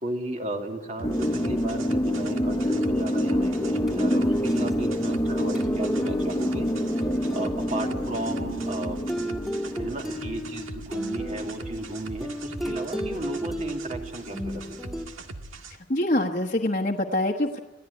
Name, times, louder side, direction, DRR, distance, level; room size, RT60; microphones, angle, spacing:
voice 1, 0.0-7.1 7.3-9.0 9.8-14.8, right 1 dB, 35° right, 3 dB, 2.6 m, -34 dB
sound 1, 1.0-10.5, equal, 15° left, 0.7 m, -27 dB
sound 2, 1.0-15.7, right 2 dB, 90° right, 2.0 m, -41 dB
sound 3, 3.4-15.1, equal, ahead, 2.2 m, -35 dB
voice 2, 15.9-17.6, left 1 dB, 40° left, -1 dB, 1.3 m, -25 dB
27.0 x 16.5 x 9.7 m, 1.2 s
head